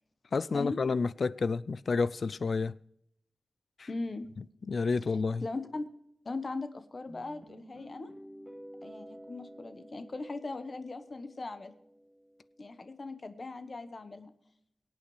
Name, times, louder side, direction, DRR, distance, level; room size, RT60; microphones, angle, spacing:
voice 1, 0.3-2.7 3.8-3.9 4.7-5.4, left 4 dB, 60° left, 0.4 m, -30 dB
voice 2, 3.9-4.3 5.4-5.9 6.2-8.1 8.8-11.7 12.6-14.3, left 3 dB, 40° left, 1.1 m, -39 dB
sound 1, 7.1-12.8, equal, 15° left, 6.4 m, -51 dB
23.0 x 9.0 x 3.2 m
wide cardioid pair, 135°, 0 cm